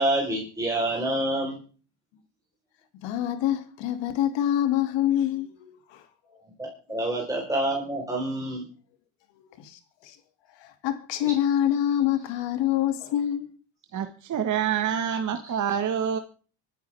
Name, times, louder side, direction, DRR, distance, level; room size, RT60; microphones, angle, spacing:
voice 1, 0.0-1.6 6.3-8.7 11.2-11.3, right 1 dB, 5° right, 4.1 m, -27 dB
voice 2, 3.0-6.0 9.5-10.2 10.6-13.5, left 11 dB, 65° left, 2.5 m, -26 dB
voice 3, 13.9-16.2, right 8 dB, 40° right, 1.4 m, -27 dB
25.0 x 10.5 x 3.4 m
supercardioid pair, 100°, 48 cm